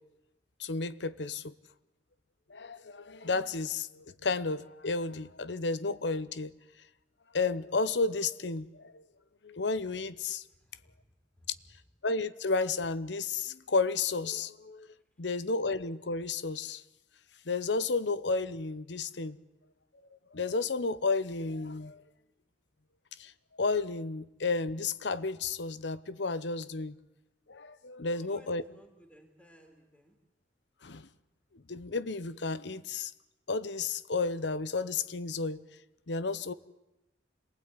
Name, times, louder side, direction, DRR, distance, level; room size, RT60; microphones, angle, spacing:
voice 1, 0.6-1.5 2.5-6.5 7.3-9.0 9.4-10.4 12.0-14.9 15.2-16.8 17.5-19.4 20.3-22.0 23.2-23.3 23.6-27.0 27.5-28.6 30.8-31.1 31.7-33.1 33.5-35.6 36.1-36.5, left 4 dB, 80° left, 0.9 m, -32 dB
voice 2, 10.5-10.9 11.4-11.5 28.1-30.2, equal, 5° left, 3.3 m, -58 dB
26.5 x 19.5 x 9.8 m
head